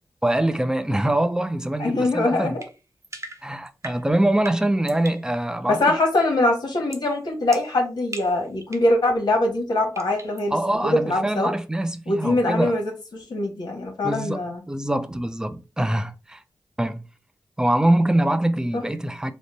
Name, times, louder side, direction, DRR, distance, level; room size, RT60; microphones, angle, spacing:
voice 1, 0.2-2.5 3.4-5.8 10.5-12.7 14.0-16.4 16.8-17.0 17.6-19.3, right 1 dB, 10° right, 0.5 m, -24 dB
voice 2, 1.8-2.6 5.7-10.6 10.8-11.5 12.1-14.6 18.7-18.8, left 2 dB, 70° left, 1.1 m, -23 dB
sound 1, 2.6-5.3 6.9-7.1 7.5-9.0 9.9-10.5, right 2 dB, 45° right, 0.8 m, -40 dB
3.6 x 2.0 x 3.9 m
cardioid pair, 45°, 7 cm